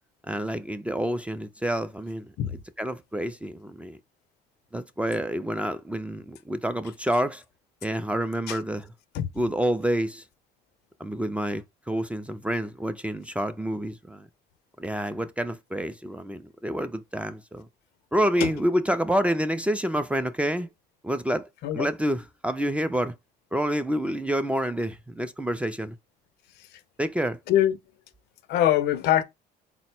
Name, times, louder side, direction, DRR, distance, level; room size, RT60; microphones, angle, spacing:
voice 1, 0.3-2.3 2.8-4.0 4.7-7.4 7.8-8.9 9.4-10.2 11.0-14.3 14.8-17.7 18.1-20.7 21.0-21.5 21.7-23.1 23.5-26.0 27.0-27.4, equal, 5° right, 0.3 m, -28 dB
voice 2, 28.5-29.2, left 12 dB, 75° left, 0.5 m, -22 dB
3.9 x 2.1 x 4.2 m
cardioid pair, 110°, 17 cm